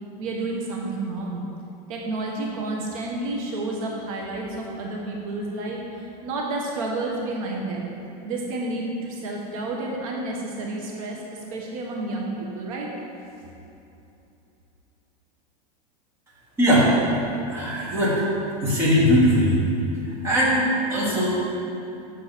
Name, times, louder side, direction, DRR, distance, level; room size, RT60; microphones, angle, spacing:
voice 1, 0.2-1.4 1.9-7.9 8.2-12.9, right 2 dB, 60° right, -1 dB, 1.1 m, -30 dB
voice 2, 16.6-17.1 17.5-18.2 18.6-19.6 20.2-20.6 20.9-21.3, equal, 15° right, -7 dB, 1.5 m, -20 dB
7.6 x 6.5 x 4.2 m, 2.8 s
supercardioid pair, 170°, 20 cm